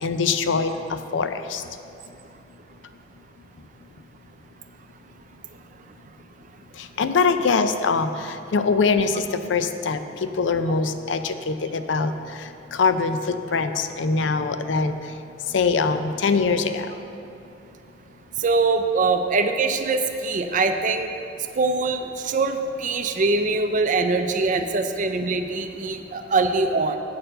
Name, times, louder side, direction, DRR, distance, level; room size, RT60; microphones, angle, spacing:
voice 1, 0.0-1.6 6.8-15.0 15.5-16.9, left 4 dB, 85° left, 9 dB, 0.5 m, -23 dB
voice 2, 18.4-21.1 21.5-27.0, right 3 dB, 45° right, 7 dB, 0.5 m, -23 dB
8.5 x 4.4 x 6.6 m, 2.7 s
head